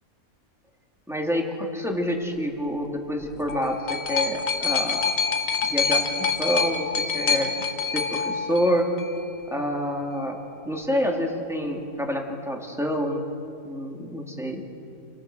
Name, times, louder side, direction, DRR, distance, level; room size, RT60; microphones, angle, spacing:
voice 1, 1.1-5.1 5.6-7.5 7.9-8.9 9.5-10.4 10.6-13.2 13.6-14.6, equal, ahead, 0 dB, 2.8 m, -27 dB
sound 1, 3.2-9.2 10.1-10.2, left 5 dB, 65° left, 1.7 m, -26 dB
28.5 x 20.5 x 6.3 m, 2.6 s
omnidirectional pair, 1.5 m